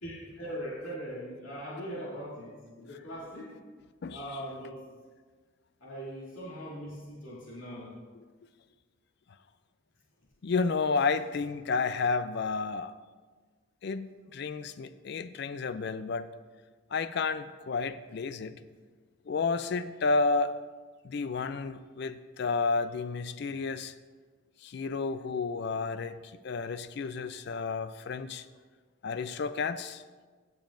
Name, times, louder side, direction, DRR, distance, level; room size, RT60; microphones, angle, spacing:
voice 1, 0.0-3.5 4.1-4.8 5.8-8.0 23.4-23.5, equal, 75° left, -7 dB, 2.6 m, -40 dB
voice 2, 10.4-12.9 13.8-16.3 16.9-18.6 19.3-20.6 21.0-23.9 24.6-28.4 29.0-30.0, left 4 dB, 50° left, 13 dB, 0.4 m, -31 dB
16.0 x 7.2 x 2.6 m, 1.4 s
head